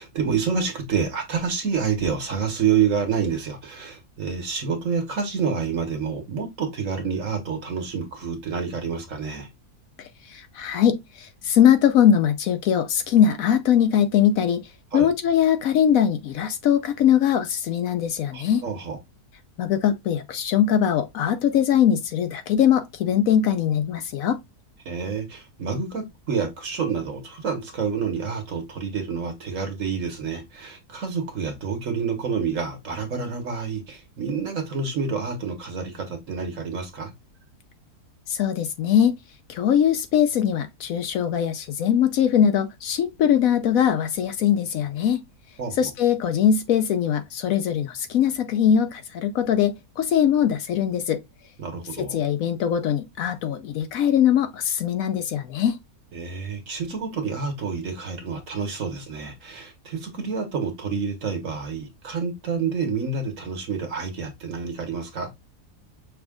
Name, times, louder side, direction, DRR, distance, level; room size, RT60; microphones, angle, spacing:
voice 1, 0.0-9.5 14.9-15.1 18.3-19.0 24.8-37.1 45.6-45.9 51.6-52.2 56.1-65.3, right 6 dB, 55° right, 1.5 m, -28 dB
voice 2, 10.0-14.6 14.9-18.7 19.6-24.4 38.3-39.1 39.5-45.2 45.7-51.2 52.0-55.8, left 9 dB, 70° left, 0.9 m, -21 dB
6.0 x 2.5 x 3.5 m
omnidirectional pair, 1.6 m